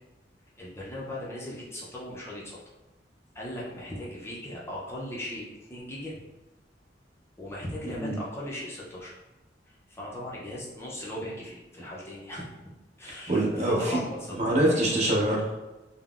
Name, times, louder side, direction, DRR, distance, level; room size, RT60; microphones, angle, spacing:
voice 1, 0.6-2.6 3.3-6.2 7.4-9.2 9.7-12.5 13.0-14.8, left 1 dB, 15° left, -6 dB, 0.5 m, -38 dB
voice 2, 7.9-8.2 13.3-14.0 14.3-15.6, right 1 dB, 40° right, -4 dB, 0.7 m, -25 dB
3.7 x 2.0 x 2.3 m, 1.1 s
head